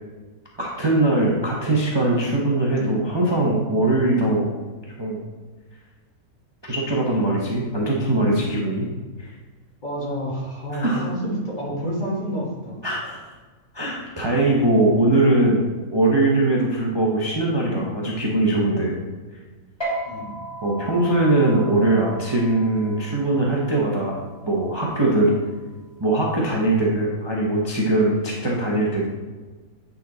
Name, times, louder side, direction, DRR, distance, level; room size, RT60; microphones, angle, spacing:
voice 1, 0.6-4.5 5.0-5.2 6.6-8.9 9.2-9.3 10.8-11.0 12.8-13.2 13.7-18.9 20.6-24.2 24.5-25.3 26.0-29.1, right 2 dB, 20° right, -3 dB, 0.8 m, -21 dB
voice 2, 9.8-12.8 19.0-19.1 20.0-20.4, equal, 30° left, -4 dB, 1.7 m, -29 dB
sound 1, 19.8-26.6, right 2 dB, 15° left, 1.6 m, -37 dB
9.1 x 4.2 x 4.0 m, 1.3 s
omnidirectional pair, 1.6 m